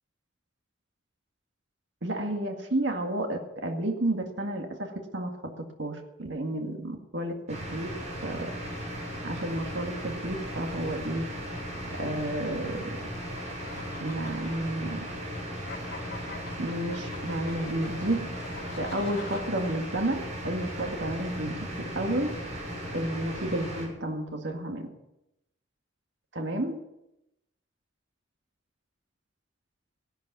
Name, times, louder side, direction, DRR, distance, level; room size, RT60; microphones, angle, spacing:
voice 1, 2.0-7.3 7.7-7.9 8.2-8.5 9.2-11.2 11.9-13.0 14.0-15.0 16.6-18.3 18.8-21.6 22.0-22.3 22.9-24.9 26.3-26.8, right 1 dB, 70° right, 3 dB, 2.0 m, -31 dB
sound 1, 7.5-23.8, equal, 40° right, 6.7 m, -37 dB
sound 2, 8.5-19.4, left 4 dB, 55° left, 2.6 m, -47 dB
16.0 x 11.5 x 7.0 m, 0.87 s
head